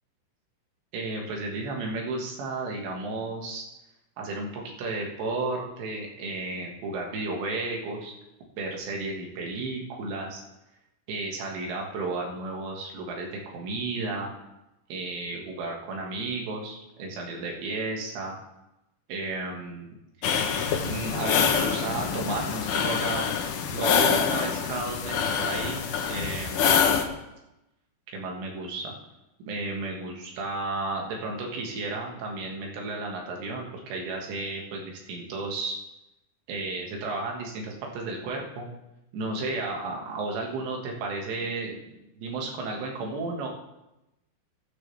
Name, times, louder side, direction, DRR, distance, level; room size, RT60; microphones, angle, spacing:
voice 1, 0.9-3.6 4.2-8.1 8.6-10.4 11.1-14.3 14.9-18.4 19.1-20.0 20.8-23.3 23.7-26.8 28.1-28.9 29.5-35.8 36.5-38.7 39.1-43.5, right 3 dB, 70° right, -1 dB, 4.2 m, -33 dB
sound 1, 20.2-27.0, left 7 dB, 80° left, 1.9 m, -25 dB
21.5 x 8.6 x 3.5 m, 0.94 s
omnidirectional pair, 5.2 m